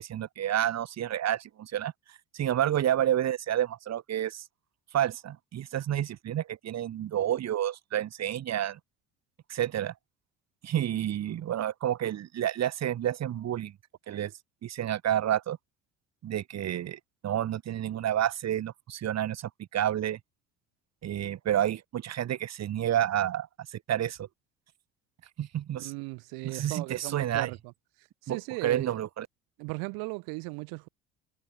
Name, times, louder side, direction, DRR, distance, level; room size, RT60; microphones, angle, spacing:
voice 1, 0.0-1.9 2.3-4.4 4.9-8.8 9.5-9.9 10.6-13.7 14.1-14.3 14.6-15.6 16.2-20.2 21.0-23.5 23.7-24.3 25.4-25.9 26.4-27.5 28.3-29.3, right 11 dB, 45° right, 1.9 m, -29 dB
voice 2, 25.7-27.6 28.2-28.9 29.6-30.9, right 30 dB, 65° right, 2.6 m, -37 dB
hypercardioid pair, 65°, 37 cm